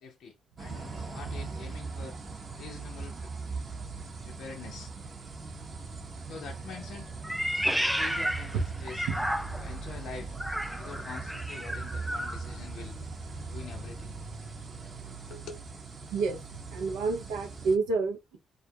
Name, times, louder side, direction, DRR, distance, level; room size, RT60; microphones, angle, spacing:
voice 1, 0.0-2.2 2.6-3.3 4.2-4.9 6.2-7.1 8.0-9.1 9.6-10.4 10.8-13.0 13.5-14.2 15.3-15.7, left 5 dB, 75° left, 0.5 m, -45 dB
sound 1, 0.6-17.8, right 4 dB, 50° right, 0.9 m, -40 dB
Meow, 7.2-9.8 10.4-12.4, equal, ahead, 0.4 m, -32 dB
voice 2, 16.7-18.4, right 4 dB, 90° right, 0.7 m, -29 dB
2.4 x 2.1 x 2.6 m
supercardioid pair, 50°, 0 cm